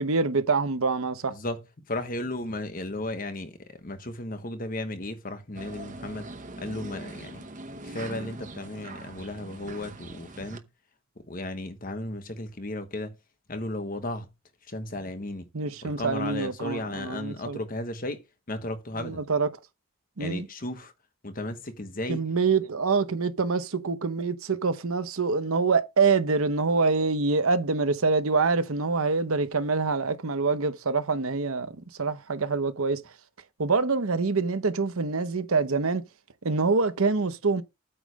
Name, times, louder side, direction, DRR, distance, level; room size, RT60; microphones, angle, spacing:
voice 1, 0.0-1.3 15.5-17.6 19.0-19.5 20.2-20.5 22.1-31.7 32.0-33.0 33.6-36.0 36.4-37.6, right 4 dB, 80° right, 0.9 m, -25 dB
voice 2, 1.3-1.6 1.9-6.3 6.6-7.5 7.8-10.6 11.2-13.1 13.5-14.3 14.7-15.5 15.8-18.2 18.5-19.2 20.2-20.9 21.2-22.2, left 1 dB, 40° left, 1.2 m, -35 dB
sound 1, 5.5-10.6, right 2 dB, 35° right, 0.9 m, -42 dB
8.8 x 3.3 x 6.3 m
head